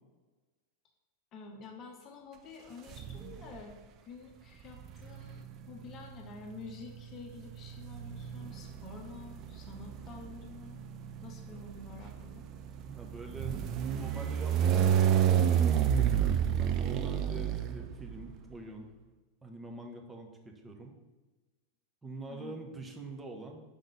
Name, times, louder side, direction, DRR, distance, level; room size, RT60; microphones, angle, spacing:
voice 1, 1.3-3.8 4.0-10.8 11.2-12.5 22.3-22.6, left 4 dB, 35° left, 2 dB, 0.8 m, -49 dB
sound 1, 2.9-3.6 4.6-18.3, right 9 dB, 35° right, 0.4 m, -30 dB
voice 2, 12.9-13.6 13.9-18.9 19.4-21.0 22.0-23.7, right 2 dB, 10° right, 2 dB, 0.9 m, -45 dB
5.2 x 3.8 x 4.8 m, 1.2 s
figure-of-eight pair, 90°, 0 cm